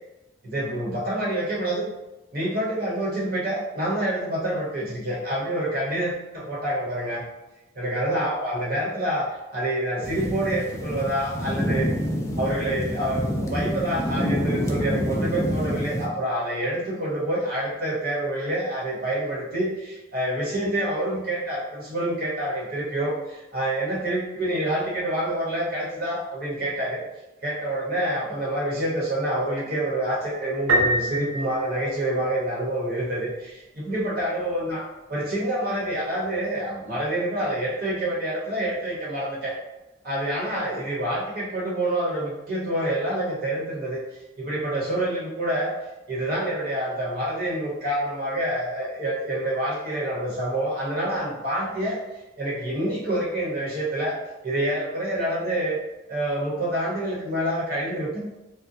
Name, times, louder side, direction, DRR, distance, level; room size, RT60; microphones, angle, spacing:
voice 1, 0.4-1.9 2.3-7.2 7.7-11.9 12.4-27.0 27.4-34.8 35.1-39.5 40.0-44.0 44.4-45.7 46.1-52.0 52.4-54.2 54.4-55.8 56.1-58.2, right 1 dB, 50° right, -6 dB, 1.0 m, -27 dB
sound 1, 10.0-16.1, equal, 15° left, 0.3 m, -27 dB
Piano, 30.7-32.5, right 1 dB, 85° right, 0.5 m, -25 dB
2.6 x 2.1 x 3.9 m, 0.98 s
head